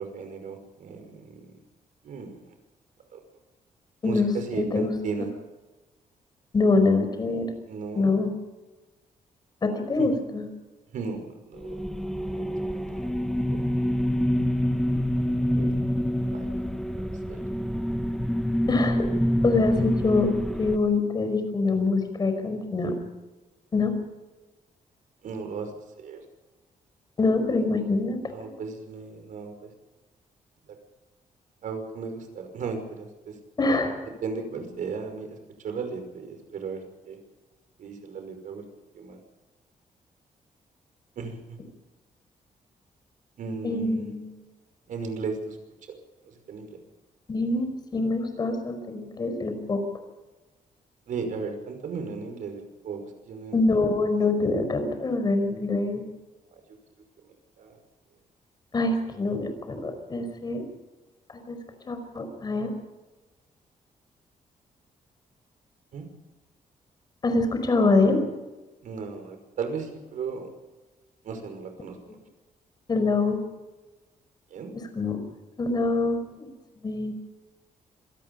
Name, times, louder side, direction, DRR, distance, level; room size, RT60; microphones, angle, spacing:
voice 1, 0.0-1.5 2.0-2.4 3.1-3.2 4.0-5.3 7.7-8.1 10.0-10.1 10.9-11.8 12.3-13.1 13.5-13.6 15.5-15.8 16.3-16.5 17.0-17.4 25.2-25.7 26.0-26.2 28.3-29.7 31.6-33.3 34.2-35.4 35.6-37.2 37.8-38.7 38.9-39.2 41.2-41.6 43.4-44.1 44.9-45.6 45.9-46.0 46.3-46.8 51.1-53.6 56.5-56.6 57.6-57.7 65.9-66.1 68.8-70.5 71.2-72.0 74.5-74.7, right 5 dB, 70° right, 6 dB, 5.6 m, -35 dB
voice 2, 4.0-4.9 6.5-7.5 7.9-8.3 9.6-10.5 18.7-19.1 19.4-20.3 20.6-23.0 23.7-23.9 27.2-28.2 33.6-34.0 43.6-44.4 47.3-49.8 53.5-56.1 58.7-60.6 61.5-61.6 61.9-62.7 67.2-68.2 72.9-73.4 75.0-75.2 75.6-76.5 76.8-77.1, left 3 dB, 30° left, 7 dB, 5.2 m, -25 dB
sound 1, 11.6-20.8, equal, ahead, 1.3 m, -26 dB
26.5 x 18.0 x 5.6 m, 1.2 s
wide cardioid pair, 160°, 14 cm